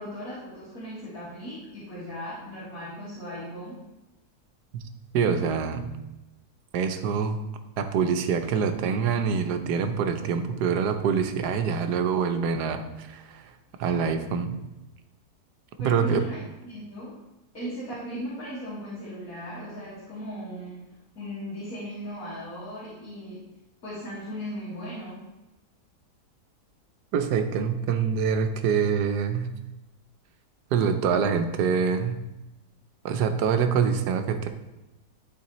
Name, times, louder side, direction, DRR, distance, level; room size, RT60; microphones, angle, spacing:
voice 1, 0.0-3.8 15.8-16.4 16.6-17.1 17.5-20.8 21.2-23.4 23.8-25.3, equal, 65° left, -10 dB, 2.3 m, -37 dB
voice 2, 5.1-5.9 6.7-7.4 7.8-13.5 13.8-14.6 15.8-16.2 27.1-29.5 30.7-32.2 33.0-34.5, right 6 dB, 90° right, 7 dB, 1.2 m, -25 dB
11.5 x 4.0 x 3.0 m, 1.0 s
omnidirectional pair, 1.7 m